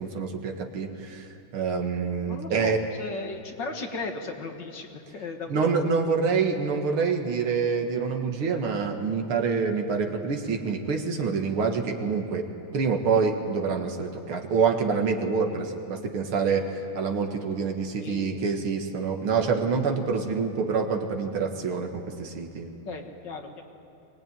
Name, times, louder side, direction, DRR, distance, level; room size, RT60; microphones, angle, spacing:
voice 1, 0.0-2.8 5.5-12.4 12.7-22.7, right 5 dB, 80° right, 4 dB, 2.6 m, -26 dB
voice 2, 2.3-5.9 18.0-18.5 22.9-23.6, left 3 dB, 60° left, 3 dB, 2.3 m, -36 dB
24.0 x 19.5 x 9.3 m, 2.9 s
omnidirectional pair, 2.3 m